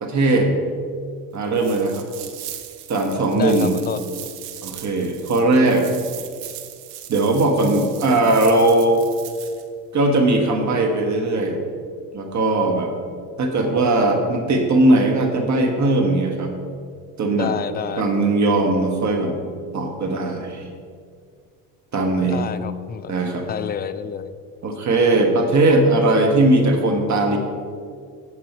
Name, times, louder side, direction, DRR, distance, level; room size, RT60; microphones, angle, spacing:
voice 1, 0.0-0.5 1.3-2.0 2.9-3.7 4.6-5.9 7.1-9.0 9.9-11.6 12.1-12.9 13.4-16.5 17.2-17.5 18.0-19.3 19.7-20.7 21.9-22.4 23.1-23.5 24.6-27.4, right 2 dB, 35° right, 4 dB, 1.5 m, -19 dB
sound 1, 1.5-9.6, right 12 dB, 85° right, 0.9 m, -38 dB
voice 2, 3.3-4.3 17.3-18.1 22.2-23.1 23.5-24.3, left 8 dB, 20° left, 11 dB, 0.4 m, -29 dB
8.3 x 7.9 x 4.5 m, 2.1 s
hypercardioid pair, 80°, 46 cm